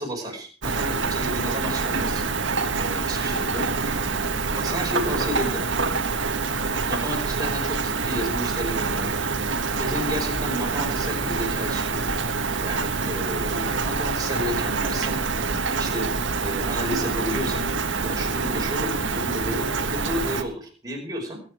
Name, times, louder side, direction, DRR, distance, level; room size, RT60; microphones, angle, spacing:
voice 1, 0.0-2.2 2.8-3.7 4.5-5.7 6.8-9.2 9.8-12.0 12.6-15.2 15.7-16.1 16.4-17.7 18.0-21.4, equal, 20° right, -1 dB, 4.8 m, -32 dB
Rain, 0.6-20.4, right 4 dB, 70° right, 1.5 m, -26 dB
21.0 x 9.1 x 4.9 m, 0.41 s
head